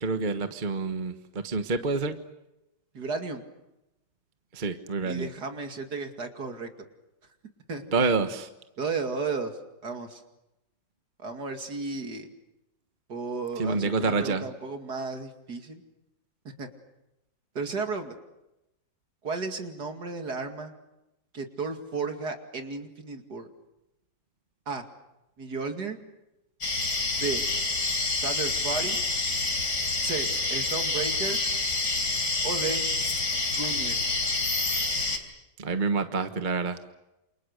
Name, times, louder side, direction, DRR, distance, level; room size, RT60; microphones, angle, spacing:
voice 1, 0.0-2.2 4.5-5.3 7.9-8.5 13.6-14.4 35.6-36.8, right 4 dB, 30° right, 8 dB, 1.2 m, -27 dB
voice 2, 2.9-3.4 5.0-6.7 7.7-7.8 8.8-9.5 9.8-10.2 11.2-12.3 13.1-15.8 16.6-16.7 17.5-18.2 19.2-20.7 21.3-23.5 24.7-24.8 25.4-26.0 27.2-27.4 28.2-29.0 30.0-31.4 32.4-32.9 33.6-34.0, right 4 dB, 55° right, 5 dB, 2.9 m, -33 dB
sound 1, 26.6-35.2, left 2 dB, 55° left, 4.3 m, -27 dB
28.5 x 28.0 x 6.7 m, 0.93 s
omnidirectional pair, 2.1 m